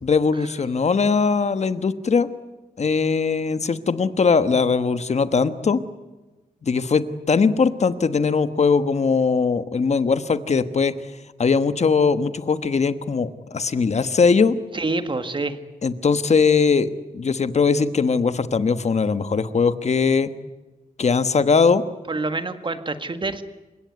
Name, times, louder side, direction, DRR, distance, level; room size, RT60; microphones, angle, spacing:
voice 1, 0.0-2.3 2.8-5.8 6.6-11.0 11.4-14.6 15.8-20.3 21.0-21.8, left 5 dB, 45° left, 12 dB, 1.2 m, -20 dB
voice 2, 14.7-15.6 22.1-23.4, right 3 dB, 35° right, 9 dB, 1.8 m, -26 dB
29.0 x 17.5 x 9.5 m, 1.2 s
wide cardioid pair, 150°, 15 cm